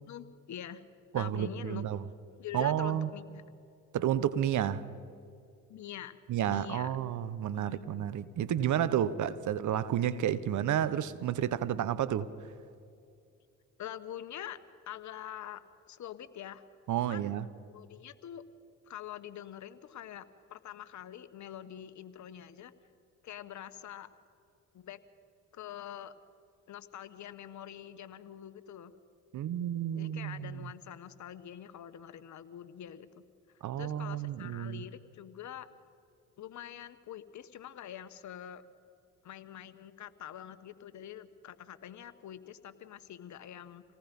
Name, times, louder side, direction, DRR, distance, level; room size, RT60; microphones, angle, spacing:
voice 1, 0.0-0.8 1.1-1.8 2.4-3.5 5.7-6.9 7.5-7.9 13.8-14.6 14.9-16.6 17.1-17.3 17.7-18.4 18.9-22.7 23.2-24.1 24.7-25.0 25.5-26.1 26.7-28.9 29.9-33.2 33.8-35.7 36.4-38.7 39.2-43.8, left 10 dB, 60° left, 1.3 m, -45 dB
voice 2, 1.1-2.0 2.5-3.1 3.9-4.8 6.3-12.3 16.9-17.5 29.3-30.7 33.6-34.8, right 10 dB, 65° right, 1.1 m, -31 dB
27.5 x 18.5 x 5.4 m
supercardioid pair, 60°, 33 cm